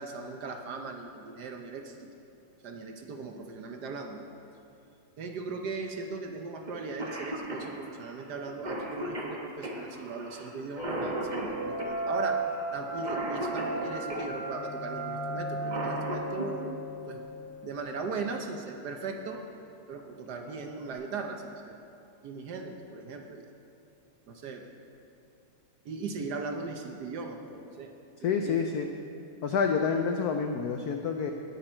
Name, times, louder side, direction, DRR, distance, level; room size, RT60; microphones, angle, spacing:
voice 1, 0.0-2.1 2.6-4.3 5.2-12.4 12.7-16.8 17.0-17.2 17.6-19.4 19.9-21.8 22.2-23.5 24.3-24.6 25.8-27.9 28.2-28.6, right 4 dB, 60° right, 3 dB, 1.2 m, -38 dB
Cough, 6.7-6.8 7.0-14.3 15.4-16.5 18.1-18.2 19.2-19.5 20.0-20.1 20.5-20.9, right 1 dB, 25° right, 1.1 m, -37 dB
sound 1, 10.8-18.1, right 2 dB, 40° left, 1.8 m, -35 dB
voice 2, 28.2-28.9 29.4-31.3, left 6 dB, 85° left, 5 dB, 0.8 m, -28 dB
18.5 x 6.8 x 4.4 m, 2.6 s
omnidirectional pair, 2.3 m